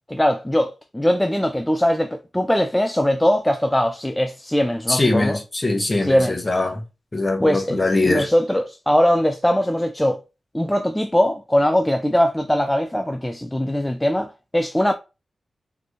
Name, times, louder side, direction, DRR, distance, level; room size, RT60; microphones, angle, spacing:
voice 1, 0.1-5.4 6.0-6.4 7.4-7.8 8.0-10.2 10.5-14.9, equal, 5° left, 0.4 m, -21 dB
voice 2, 4.9-6.8 7.1-8.3, left 2 dB, 25° left, 1.0 m, -22 dB
4.2 x 3.3 x 3.0 m
wide cardioid pair, 120°, 0 cm